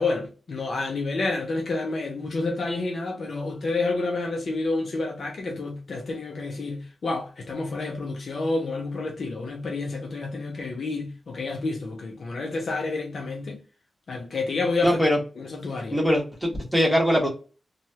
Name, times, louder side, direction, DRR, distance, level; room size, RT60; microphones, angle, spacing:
voice 1, 0.0-13.6 14.1-15.0 15.4-16.0, left 3 dB, 65° left, 0.6 m, -29 dB
voice 2, 14.8-15.2 15.9-17.3, equal, 5° left, 1.5 m, -21 dB
3.1 x 2.3 x 2.8 m
wide cardioid pair, 110°, 0 cm